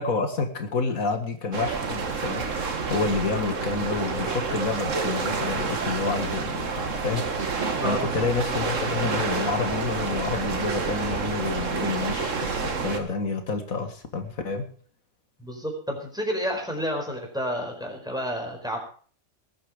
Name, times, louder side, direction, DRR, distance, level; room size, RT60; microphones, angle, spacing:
voice 1, 0.0-14.6, left 4 dB, 85° left, 7 dB, 2.3 m, -29 dB
sound 1, 1.5-13.0, right 4 dB, 65° right, 2.0 m, -29 dB
voice 2, 7.8-8.2 15.4-18.8, equal, 5° right, 2 dB, 4.8 m, -30 dB
20.0 x 8.9 x 5.2 m, 0.43 s
omnidirectional pair, 1.4 m